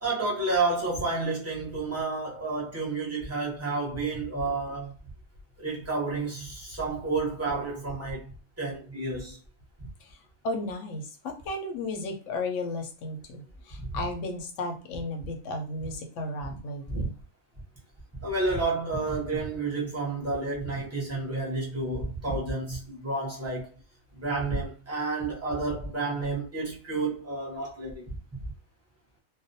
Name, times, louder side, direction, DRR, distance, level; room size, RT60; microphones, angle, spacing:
voice 1, 0.0-4.9 5.6-8.3 8.6-9.4 16.5-16.6 16.9-17.1 18.2-23.7 24.2-28.1, right 3 dB, 15° right, 0.5 m, -30 dB
voice 2, 10.4-17.1, left 2 dB, 65° left, 0.9 m, -34 dB
2.4 x 2.1 x 2.6 m
omnidirectional pair, 1.6 m